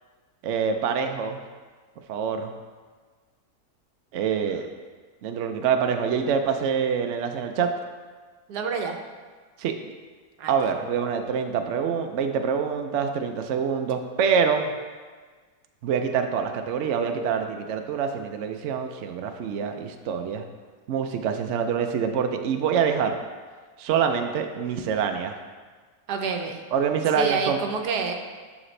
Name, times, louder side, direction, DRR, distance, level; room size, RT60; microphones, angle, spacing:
voice 1, 0.4-1.4 2.1-2.5 4.1-4.6 5.2-7.7 9.6-9.7 10.5-14.7 15.8-20.4 20.9-23.1 23.8-25.3 26.7-27.6, right 7 dB, 65° right, 5 dB, 0.8 m, -25 dB
voice 2, 8.5-9.0 10.4-10.5 26.1-26.6 27.1-28.1, right 4 dB, 85° right, 4 dB, 1.3 m, -27 dB
9.9 x 5.9 x 3.2 m, 1.5 s
omnidirectional pair, 1.7 m